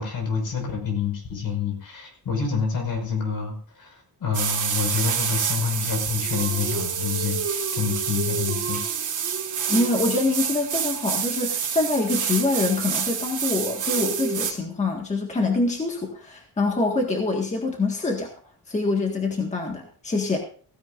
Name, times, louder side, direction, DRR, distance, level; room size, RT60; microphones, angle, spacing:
voice 1, 0.0-8.8, left 6 dB, 65° left, 3 dB, 5.6 m, -28 dB
sound 1, 4.3-14.5, right 7 dB, 55° right, 1.8 m, -27 dB
voice 2, 9.7-18.3 18.7-20.4, left 3 dB, 20° left, 1 dB, 1.7 m, -25 dB
16.5 x 15.5 x 2.5 m, 0.44 s
wide cardioid pair, 175°, 37 cm